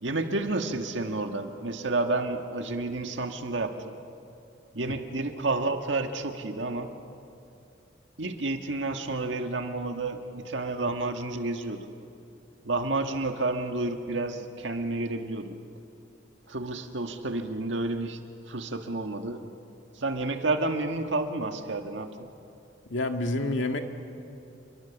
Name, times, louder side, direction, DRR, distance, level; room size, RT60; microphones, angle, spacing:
voice 1, 0.0-3.9 4.7-6.9 8.2-11.9 12.6-15.6 16.5-18.2 18.5-19.4 20.0-22.1, right 2 dB, 75° right, 5 dB, 1.7 m, -30 dB
voice 2, 22.9-23.8, left 2 dB, 90° left, 5 dB, 1.8 m, -28 dB
28.5 x 22.5 x 7.2 m, 2.6 s
head